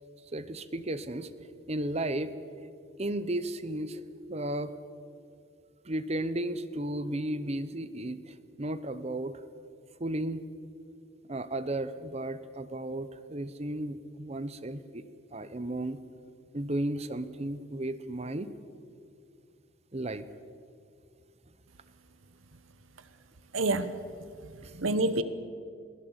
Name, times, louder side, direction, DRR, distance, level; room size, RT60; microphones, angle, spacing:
voice 1, 0.3-1.3 1.7-2.3 3.0-4.0 4.3-4.7 5.8-9.4 10.0-10.4 11.3-15.0 15.3-16.0 16.5-18.5 19.9-20.3 24.6-24.7, right 1 dB, 35° right, 13 dB, 0.8 m, -34 dB
voice 2, 23.5-23.9 24.4-25.2, right 2 dB, 85° right, 13 dB, 1.2 m, -28 dB
22.0 x 16.0 x 8.1 m, 2.4 s
head